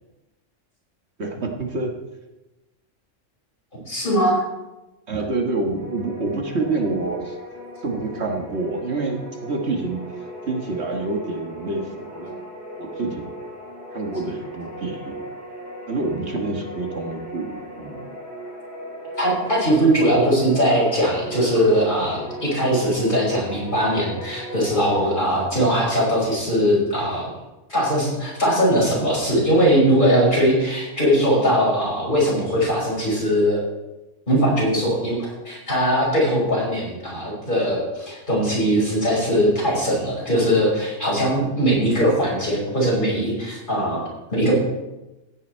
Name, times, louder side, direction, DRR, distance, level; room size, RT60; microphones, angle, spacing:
voice 1, 1.2-1.9 5.1-7.4 7.8-12.4 12.8-13.3 13.9-15.3 15.9-18.0, right 3 dB, 60° right, 1 dB, 1.7 m, -27 dB
voice 2, 3.8-4.4 19.2-27.3 27.7-33.6 34.3-44.5, equal, 40° left, -4 dB, 5.7 m, -20 dB
sound 1, 5.6-25.1, equal, 15° right, 4.1 m, -37 dB
15.5 x 9.4 x 4.5 m, 1.0 s
omnidirectional pair, 1.3 m